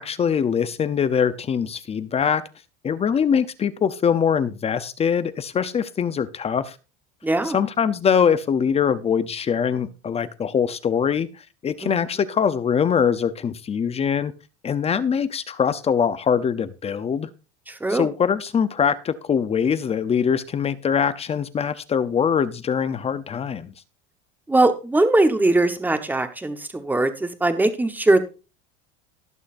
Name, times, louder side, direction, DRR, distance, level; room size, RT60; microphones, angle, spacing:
voice 1, 0.0-2.4 2.8-6.8 7.4-11.3 11.6-14.3 14.6-17.3 17.9-23.7, left 7 dB, 20° left, 0.6 m, -23 dB
voice 2, 7.2-7.6 11.8-11.9 17.7-18.1 24.5-28.2, right 2 dB, 5° right, 1.1 m, -20 dB
19.0 x 6.4 x 2.6 m
cardioid pair, 145°, 30 cm